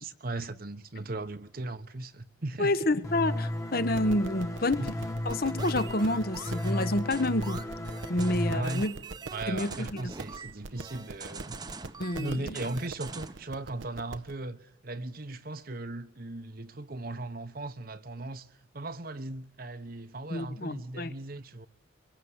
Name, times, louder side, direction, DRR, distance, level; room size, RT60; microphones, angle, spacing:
voice 1, 0.0-2.8 4.8-4.9 8.5-8.8 9.3-11.6 12.2-21.7, right 2 dB, 50° right, 1.1 m, -38 dB
voice 2, 2.6-4.9 5.2-7.6 8.1-8.9 9.5-10.1 12.0-12.6 20.3-21.1, left 1 dB, 50° left, 1.2 m, -29 dB
sound 1, 3.0-8.6, left 1 dB, 15° left, 1.4 m, -34 dB
sound 2, 3.9-14.4, right 3 dB, 80° right, 1.0 m, -44 dB
sound 3, 5.3-13.5, right 4 dB, 20° right, 0.9 m, -44 dB
24.0 x 24.0 x 8.1 m
head